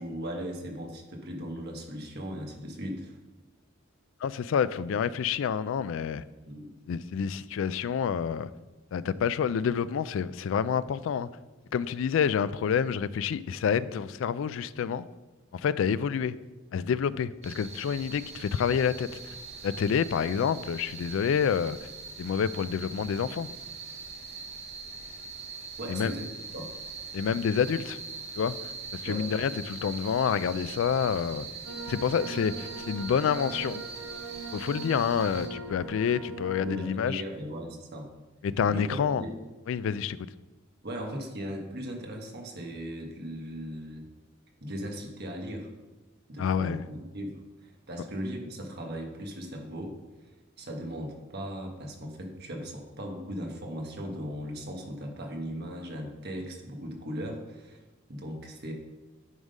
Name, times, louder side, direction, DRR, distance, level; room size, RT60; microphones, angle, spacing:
voice 1, 0.0-3.2 6.5-6.7 25.8-26.3 26.5-26.7 29.0-29.3 36.6-38.1 38.7-38.9 39.2-39.3 40.8-44.1 44.6-45.7 46.3-49.9 50.6-57.8 58.1-58.7, equal, 50° right, 2 dB, 1.3 m, -38 dB
voice 2, 4.2-6.2 6.9-8.5 8.9-11.3 11.7-15.1 15.5-16.3 16.7-19.3 19.6-21.8 22.2-23.5 25.9-26.1 27.1-28.0 28.4-28.5 28.9-31.5 31.9-33.8 34.5-37.2 38.4-39.2 39.7-40.3 46.4-46.8, left 7 dB, 65° left, 16 dB, 0.3 m, -28 dB
sound 1, 17.4-35.5, right 4 dB, 30° right, 0.9 m, -42 dB
sound 2, 31.7-36.9, right 3 dB, 75° right, 0.7 m, -41 dB
9.4 x 3.7 x 5.3 m, 1.2 s
head